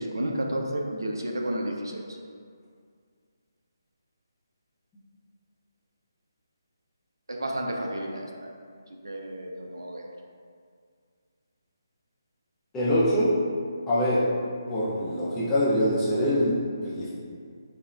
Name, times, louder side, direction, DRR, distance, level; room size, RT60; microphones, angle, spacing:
voice 1, 0.0-2.0 7.3-8.5 9.0-10.0, right 1 dB, 75° right, 0 dB, 0.3 m, -31 dB
voice 2, 12.7-13.3 13.9-14.2 14.7-17.1, equal, 10° left, -9 dB, 0.4 m, -24 dB
2.8 x 2.0 x 2.4 m, 2.1 s
figure-of-eight pair, 150°, 2 cm